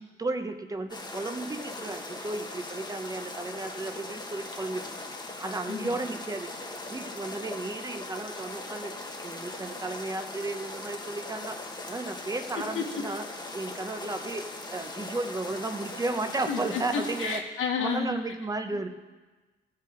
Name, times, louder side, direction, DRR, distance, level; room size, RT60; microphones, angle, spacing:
voice 1, 0.2-4.9 5.4-6.5 6.9-8.9 9.2-11.6 11.9-13.2 13.5-17.4 17.8-18.9, right 2 dB, 15° right, 7 dB, 0.9 m, -34 dB
sound 1, 0.9-17.4, left 2 dB, 20° left, 1.2 m, -40 dB
voice 2, 16.5-18.1 18.7-18.8, left 5 dB, 90° left, 1 dB, 1.7 m, -31 dB
16.0 x 5.7 x 5.1 m, 1.3 s
cardioid pair, 90°, 20 cm